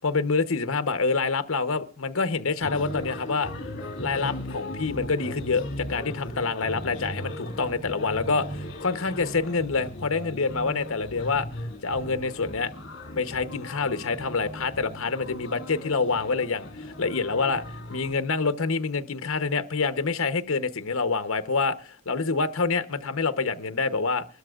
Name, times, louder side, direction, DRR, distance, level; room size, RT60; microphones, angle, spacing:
voice 1, 0.0-3.5 4.0-11.5 11.8-12.7 13.2-17.6 17.9-24.2, left 4 dB, 70° left, 0.9 m, -27 dB
sound 1, 2.6-18.1, left 1 dB, 55° left, 2.3 m, -37 dB
23.5 x 13.0 x 2.4 m
head